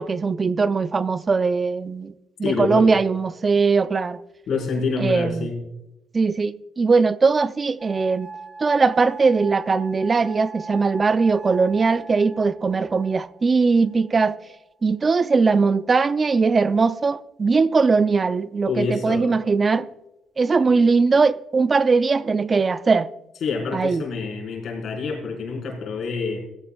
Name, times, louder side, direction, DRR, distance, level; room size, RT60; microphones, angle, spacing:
voice 1, 0.0-2.1 2.4-4.2 5.0-5.5 6.1-8.3 8.6-14.4 14.8-19.9 20.4-23.1 23.7-24.0, right 4 dB, 35° right, 0.4 m, -20 dB
voice 2, 2.4-2.9 4.5-5.6 18.7-19.4 23.4-26.4, left 4 dB, 65° left, 4.6 m, -27 dB
sound 1, 7.8-14.7 15.6-16.2, right 4 dB, 15° right, 1.5 m, -41 dB
17.0 x 15.0 x 2.3 m
cardioid pair, 90°, 0 cm